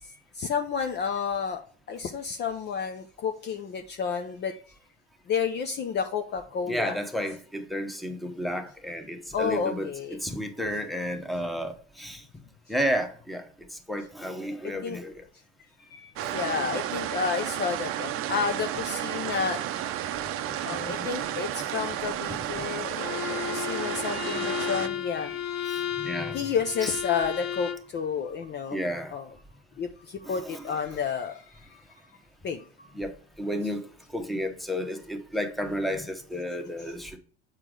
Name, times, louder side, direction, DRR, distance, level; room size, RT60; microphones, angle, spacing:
voice 1, 0.0-1.6 1.9-4.7 5.3-6.9 9.3-10.2 14.8-15.0 15.8-19.6 20.6-25.4 26.3-28.8 29.1-29.3 29.8-31.8 32.4-32.9, left 6 dB, 35° left, 0.6 m, -31 dB
voice 2, 6.7-9.9 10.2-12.2 12.7-13.5 13.9-15.2 16.2-16.7 20.6-21.1 22.5-22.8 24.3-24.4 25.7-26.4 26.8-26.9 28.7-29.1 30.2-30.7 32.9-33.8 34.1-37.2, equal, ahead, 1.1 m, -32 dB
sound 1, 16.2-24.9, right 11 dB, 45° right, 0.6 m, -32 dB
Bowed string instrument, 23.0-27.9, left 10 dB, 60° left, 0.9 m, -33 dB
8.0 x 4.6 x 3.8 m
hypercardioid pair, 85°, 31 cm